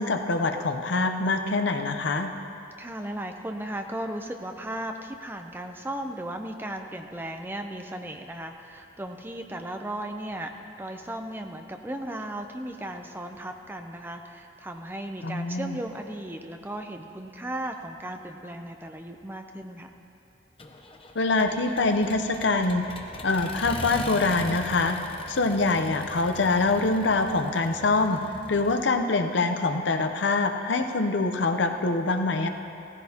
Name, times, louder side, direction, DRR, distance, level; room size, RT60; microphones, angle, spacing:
voice 1, 0.0-2.3 15.2-15.8 21.1-22.8 23.2-25.0 25.3-28.2 28.5-32.5, left 3 dB, 70° left, 6 dB, 0.7 m, -24 dB
voice 2, 2.8-10.5 10.8-19.9, right 1 dB, 10° right, 5 dB, 0.5 m, -36 dB
Accelerating revving vroom, 20.6-28.9, left 2 dB, 30° left, 0.8 m, -41 dB
16.5 x 14.5 x 2.9 m, 2.7 s
head